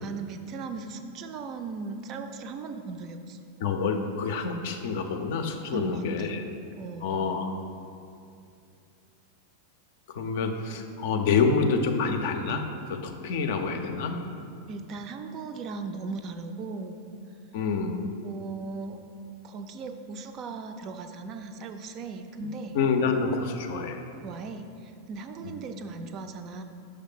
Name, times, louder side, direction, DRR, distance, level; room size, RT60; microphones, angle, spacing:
voice 1, 0.0-3.4 5.7-6.3 6.8-7.2 14.7-17.0 18.2-19.0 19.4-22.8 24.2-26.6, right 4 dB, 35° right, 7 dB, 0.4 m, -38 dB
voice 2, 3.6-6.4 7.0-7.5 10.1-14.2 17.5-18.1 22.7-24.1 25.4-25.5, left 5 dB, 50° left, 6 dB, 0.5 m, -27 dB
5.7 x 3.2 x 5.6 m, 2.5 s
figure-of-eight pair, 90°, 0 cm